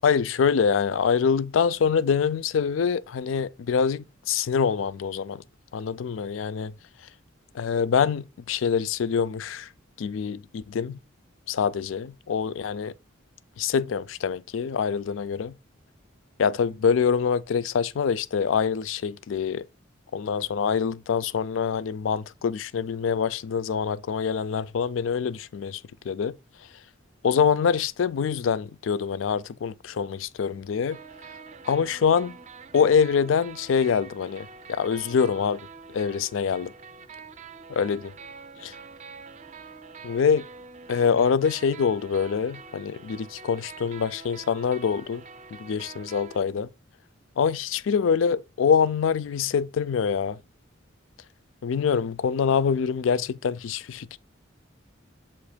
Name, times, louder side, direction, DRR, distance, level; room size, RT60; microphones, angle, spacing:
voice 1, 0.0-5.4 5.7-6.7 7.5-9.7 10.0-11.0 11.5-12.9 13.6-15.6 16.4-19.7 20.1-25.8 26.1-26.4 27.2-31.0 31.7-32.4 32.7-35.6 35.9-36.7 37.7-38.1 38.6-38.7 40.0-40.4 40.9-45.2 45.6-46.7 47.4-50.4 51.6-54.2, left 6 dB, 75° left, 0.4 m, -25 dB
sound 1, 30.9-46.4, right 5 dB, 35° right, 0.4 m, -45 dB
7.1 x 2.9 x 5.0 m
head